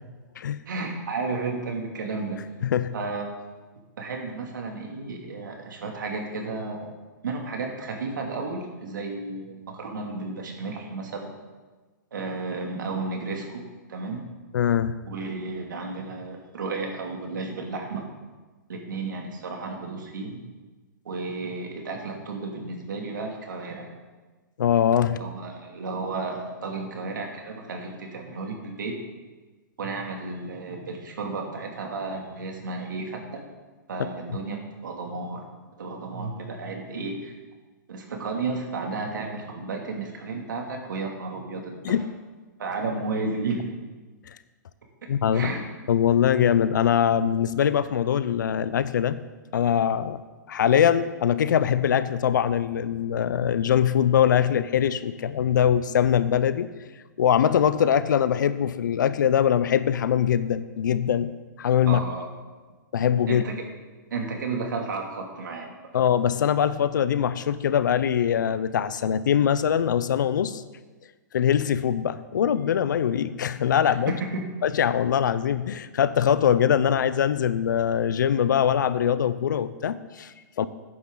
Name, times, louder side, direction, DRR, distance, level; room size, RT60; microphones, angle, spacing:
voice 1, 0.7-2.4 2.9-3.3 4.0-6.9 7.2-11.3 12.1-13.6 13.9-14.3 15.1-18.1 18.7-20.4 21.0-23.9 25.2-29.0 29.8-33.4 33.9-35.5 35.8-37.3 37.9-41.9 42.6-43.6 45.3-45.6 61.9-62.3 63.3-63.5 64.1-65.9 73.8-74.4, right 3 dB, 80° right, 1 dB, 2.7 m, -33 dB
voice 2, 2.6-2.9 14.5-15.0 24.6-25.2 41.8-42.0 45.1-45.5 45.9-49.2 49.5-50.2 50.5-56.7 57.2-61.3 61.6-62.0 62.9-63.4 65.9-70.6 71.3-74.2 74.6-80.7, left 9 dB, 75° left, 15 dB, 0.7 m, -22 dB
13.5 x 9.6 x 4.0 m, 1.3 s
hypercardioid pair, 140°, 10 cm